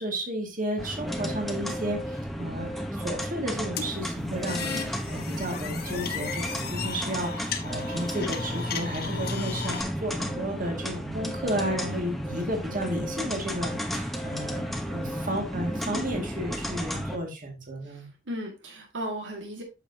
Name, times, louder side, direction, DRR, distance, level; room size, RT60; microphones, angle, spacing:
voice 1, 0.0-18.1, right 1 dB, 45° right, 2 dB, 2.1 m, -33 dB
sound 1, 0.8-17.2, equal, ahead, 0.9 m, -33 dB
sound 2, 3.8-9.8, left 5 dB, 55° left, 1.4 m, -35 dB
voice 2, 17.8-19.6, equal, 75° right, 2 dB, 1.9 m, -36 dB
8.8 x 6.9 x 2.8 m, 0.27 s
head